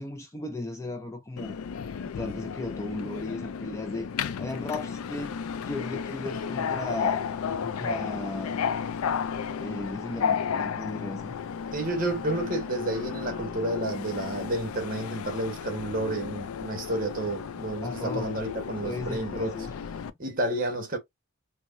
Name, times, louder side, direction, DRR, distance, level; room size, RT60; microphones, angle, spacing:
voice 1, 0.0-1.6 2.0-4.1 4.4-7.3 7.6-8.6 9.6-11.4 17.8-18.4 18.8-19.7, left 2 dB, 15° left, 0.4 m, -36 dB
Subway metro underground, 1.4-20.1, left 7 dB, 90° left, 0.4 m, -33 dB
voice 2, 11.7-19.6 20.2-21.0, right 1 dB, 40° right, 1.1 m, -30 dB
4.5 x 2.2 x 2.5 m
head